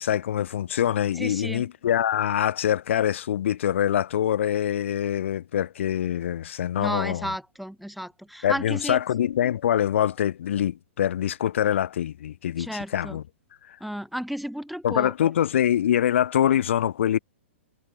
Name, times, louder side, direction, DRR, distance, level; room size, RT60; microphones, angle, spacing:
voice 1, 0.0-7.3 8.4-13.2 13.7-13.8 14.8-17.2, left 10 dB, 65° left, 3.0 m, -24 dB
voice 2, 1.1-1.6 6.8-9.0 12.6-13.2 13.8-15.3, equal, ahead, 1.2 m, -33 dB
hypercardioid pair, 140°, 7 cm